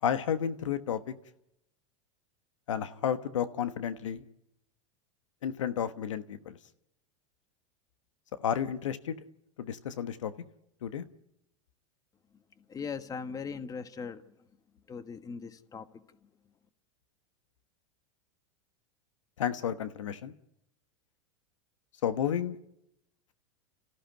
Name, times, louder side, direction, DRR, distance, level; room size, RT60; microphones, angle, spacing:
voice 1, 0.0-1.0 2.7-4.2 5.4-6.6 8.4-9.2 9.6-10.3 10.8-11.0 19.4-20.3 22.0-22.6, left 9 dB, 85° left, 11 dB, 1.3 m, -31 dB
voice 2, 12.7-14.2 14.9-15.8, left 5 dB, 25° left, 10 dB, 1.5 m, -39 dB
30.0 x 15.0 x 9.4 m, 0.87 s
hypercardioid pair, 105°, 16 cm